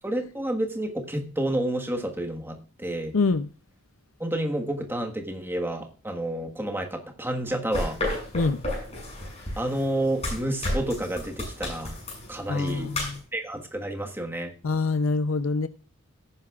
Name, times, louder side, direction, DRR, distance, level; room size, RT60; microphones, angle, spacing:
voice 1, 0.0-3.2 4.2-8.0 9.6-11.9 12.3-12.9 13.3-14.5, right 1 dB, 10° right, 1.4 m, -30 dB
voice 2, 3.1-3.5 8.3-8.6 12.5-13.2 14.6-15.7, left 3 dB, 65° left, 0.6 m, -25 dB
sound 1, 7.7-13.2, left 1 dB, 30° left, 6.6 m, -33 dB
17.5 x 9.8 x 2.4 m
head